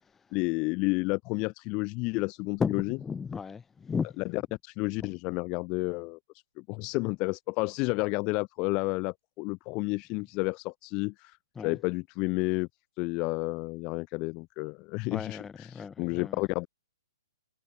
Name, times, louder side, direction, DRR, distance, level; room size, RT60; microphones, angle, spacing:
voice 1, 0.3-3.0 4.2-6.2 6.6-12.7 13.0-16.7, left 27 dB, 30° left, 0.9 m, -31 dB
voice 2, 2.6-4.2 5.0-5.1 11.6-11.8 15.1-16.4, left 6 dB, 10° left, 5.7 m, -34 dB
figure-of-eight pair, 125°, 2 cm